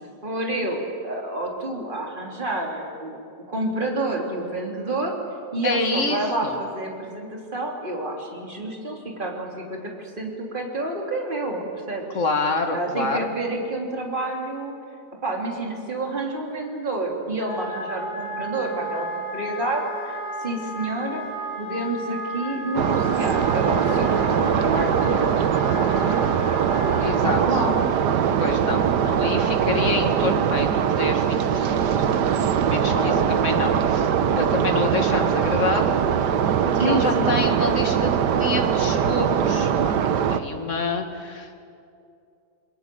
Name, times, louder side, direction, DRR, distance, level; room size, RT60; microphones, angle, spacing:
voice 1, 0.2-3.2 3.5-5.1 5.5-12.1 12.7-14.7 15.2-21.2 21.6-25.4 25.8-26.3 27.2-27.8 32.9-33.3 36.7-37.7, right 2 dB, 30° right, 0 dB, 3.5 m, -29 dB
voice 2, 5.6-6.6 12.1-13.3 27.0-27.4 28.4-32.1 32.7-34.1 34.4-36.0 36.6-39.7 40.1-41.6, left 3 dB, 50° left, 4 dB, 2.3 m, -27 dB
Wind instrument woodwind instrument, 17.3-27.2, equal, 65° left, 7.7 m, -34 dB
sound 1, 22.8-40.4, right 8 dB, 90° right, 1.6 m, -22 dB
29.0 x 21.5 x 7.8 m, 2.5 s
omnidirectional pair, 1.7 m